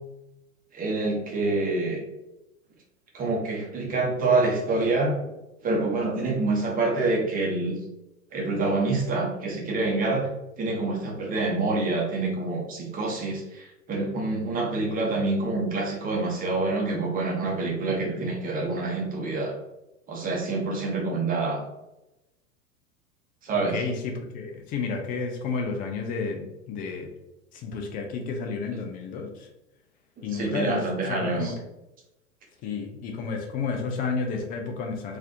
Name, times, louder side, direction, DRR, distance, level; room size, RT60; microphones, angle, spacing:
voice 1, 0.7-2.0 3.1-5.3 5.6-7.8 8.3-10.3 10.6-19.5 20.1-21.6 23.4-23.8 30.2-31.5, right 3 dB, 20° right, -1 dB, 0.9 m, -26 dB
voice 2, 23.5-27.1 27.5-29.5 30.2-31.6 32.6-35.2, left 4 dB, 20° left, 3 dB, 0.4 m, -31 dB
4.0 x 2.7 x 2.7 m, 0.95 s
figure-of-eight pair, 95°, 42 cm